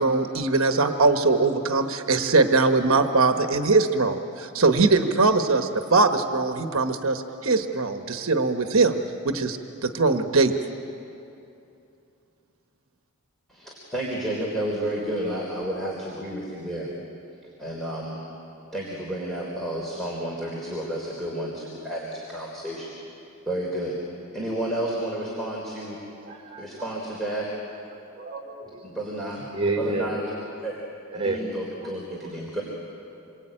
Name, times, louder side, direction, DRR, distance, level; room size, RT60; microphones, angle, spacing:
voice 1, 0.0-9.0 9.2-9.6 9.8-10.5, right 3 dB, 65° right, 7 dB, 1.2 m, -21 dB
voice 2, 13.5-16.9 17.6-18.2 18.7-22.9 23.5-23.9 24.3-26.0 26.6-27.5 28.8-29.5 29.8-30.3 30.6-30.7 31.1-32.6, right 1 dB, ahead, -4 dB, 3.8 m, -31 dB
voice 3, 26.2-27.0 28.1-28.8 29.5-30.2 31.1-31.4 31.8-31.9, right 2 dB, 25° right, 2 dB, 4.6 m, -30 dB
27.5 x 23.5 x 8.9 m, 2.7 s
head